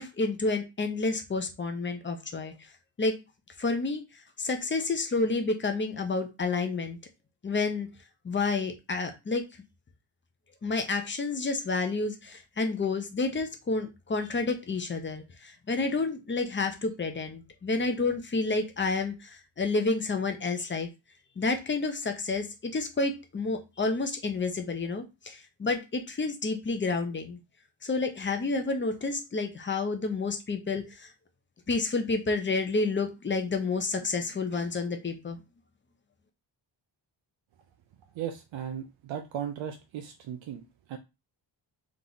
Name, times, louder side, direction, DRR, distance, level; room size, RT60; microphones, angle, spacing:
voice 1, 0.0-2.5 3.0-3.1 3.6-4.0 4.4-7.0 7.4-7.9 8.2-9.5 10.6-20.9 21.4-27.4 27.8-31.1 31.7-35.4, left 3 dB, 25° left, 6 dB, 0.7 m, -30 dB
voice 2, 38.2-41.0, right 9 dB, 85° right, 5 dB, 0.7 m, -37 dB
3.6 x 3.0 x 3.9 m, 0.26 s
wide cardioid pair, 135°, 45 cm